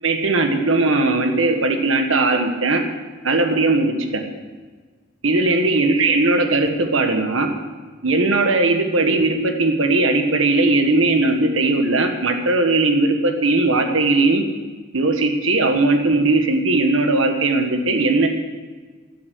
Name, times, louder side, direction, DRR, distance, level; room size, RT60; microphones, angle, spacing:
voice 1, 0.0-2.8 3.2-4.2 5.2-7.5 8.0-14.4 14.9-18.3, right 2 dB, 80° right, 5 dB, 1.5 m, -18 dB
15.0 x 8.6 x 6.3 m, 1.4 s
head